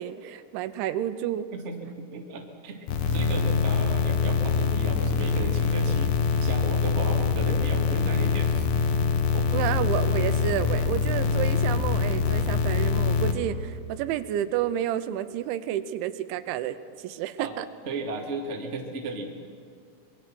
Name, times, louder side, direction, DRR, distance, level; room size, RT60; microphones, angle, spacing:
voice 1, 0.0-1.5 9.5-17.7, right 11 dB, 85° right, 12 dB, 3.1 m, -30 dB
voice 2, 1.5-8.8 9.3-9.4 17.4-17.5 17.8-19.3, right 3 dB, 50° right, 1 dB, 0.8 m, -35 dB
sound 1, 2.9-13.3, left 5 dB, 65° left, 2.3 m, -24 dB
25.5 x 22.5 x 6.2 m, 2.4 s
omnidirectional pair, 5.5 m